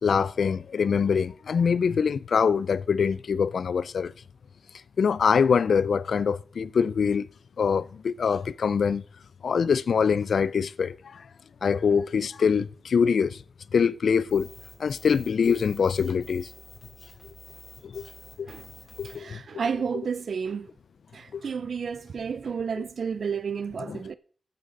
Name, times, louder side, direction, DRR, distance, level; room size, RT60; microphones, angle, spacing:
voice 1, 0.0-4.1 5.0-7.3 7.6-9.0 9.4-11.2 11.6-13.4 13.7-14.5 14.8-16.5 17.8-18.1 18.4-18.5 19.0-19.4 21.3-21.4 22.8-22.9 23.8-24.0, left 6 dB, 80° left, 0.4 m, -24 dB
sound 1, 14.3-19.2, left 3 dB, 50° left, 5.7 m, -48 dB
voice 2, 19.0-20.7 21.1-24.2, right 6 dB, 75° right, 0.5 m, -31 dB
13.0 x 9.1 x 3.9 m
wide cardioid pair, 80°, 0 cm